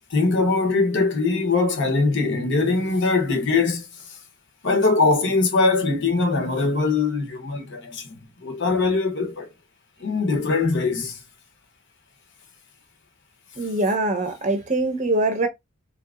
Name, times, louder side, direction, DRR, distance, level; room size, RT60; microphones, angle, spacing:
voice 1, 0.1-3.9 4.6-8.1 8.4-9.5 10.0-11.2, left 3 dB, 55° left, 0.8 m, -21 dB
voice 2, 13.6-15.5, right 2 dB, 35° right, 0.7 m, -23 dB
3.5 x 2.8 x 2.4 m
head